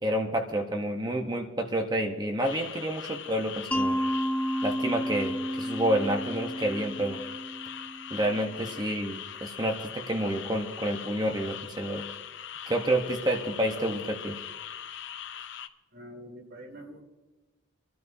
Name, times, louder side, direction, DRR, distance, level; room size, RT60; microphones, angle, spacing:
voice 1, 0.0-4.0 4.6-7.2 8.1-12.0 12.7-14.4, right 1 dB, 20° right, 3 dB, 1.0 m, -29 dB
sound 1, 2.4-15.7, left 9 dB, 60° left, 0.6 m, -41 dB
Mallet percussion, 3.7-8.5, equal, 5° left, 0.4 m, -31 dB
voice 2, 15.9-17.0, equal, 50° right, 3 dB, 2.4 m, -45 dB
25.5 x 12.5 x 2.7 m, 1.2 s
head